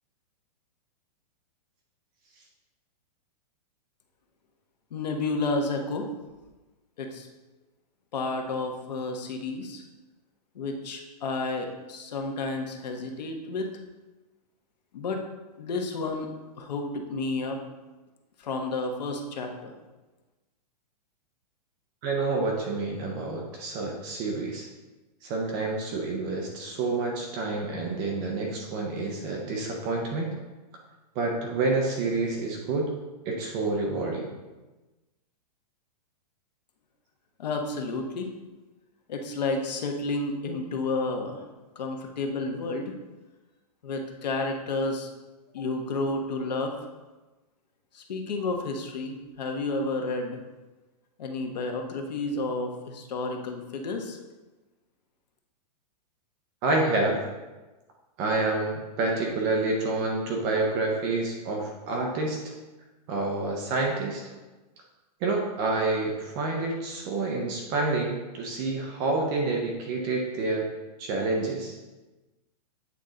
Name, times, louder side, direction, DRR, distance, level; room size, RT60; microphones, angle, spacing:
voice 1, 4.9-6.1 7.0-7.3 8.1-9.8 10.5-13.7 14.9-15.2 15.6-17.6 18.4-19.7 37.4-38.3 39.1-41.4 41.7-42.9 43.8-45.1 45.5-46.9 47.9-50.4 51.2-54.2, left 3 dB, 85° left, 3 dB, 1.2 m, -31 dB
voice 2, 22.0-24.7 25.2-30.3 31.2-32.9 33.2-34.3 56.6-57.2 58.2-62.5 63.1-64.2 65.2-70.7 71.0-71.8, right 3 dB, 15° right, 0 dB, 0.4 m, -28 dB
8.3 x 3.7 x 3.8 m, 1.2 s
supercardioid pair, 175°, 21 cm